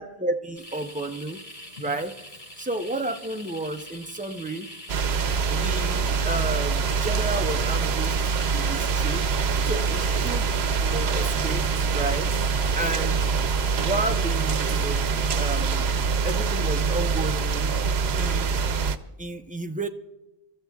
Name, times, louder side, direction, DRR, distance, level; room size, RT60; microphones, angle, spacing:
voice 1, 0.0-1.4 1.8-2.2 2.6-4.7 5.5-8.2 8.5-9.3 9.6-10.5 10.8-12.3 12.7-13.3 13.8-15.1 15.3-15.9 16.2-17.7 18.2-18.6 19.2-19.9, right 2 dB, 10° right, 5 dB, 0.6 m, -32 dB
sound 1, 0.6-16.1, left 1 dB, 50° left, 2.2 m, -44 dB
Noisy Rain, 4.9-19.0, right 5 dB, 85° right, 0.9 m, -24 dB
27.0 x 14.0 x 2.3 m, 1.1 s
omnidirectional pair, 1.0 m